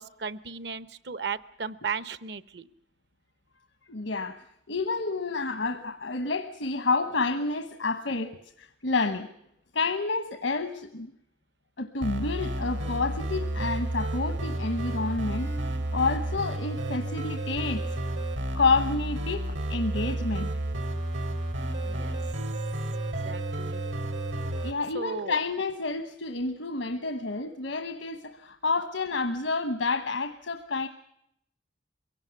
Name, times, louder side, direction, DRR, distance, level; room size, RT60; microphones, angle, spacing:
voice 1, 0.0-2.7 21.8-22.2 23.2-23.8 24.9-25.4, right 6 dB, 65° right, 15 dB, 0.9 m, -35 dB
voice 2, 3.9-9.3 9.7-11.1 11.8-15.5 15.9-17.8 18.5-20.5 24.6-30.9, left 3 dB, 85° left, 8 dB, 1.1 m, -29 dB
sound 1, 12.0-24.7, right 1 dB, 80° right, 3.0 m, -31 dB
23.5 x 17.0 x 9.4 m, 0.75 s
head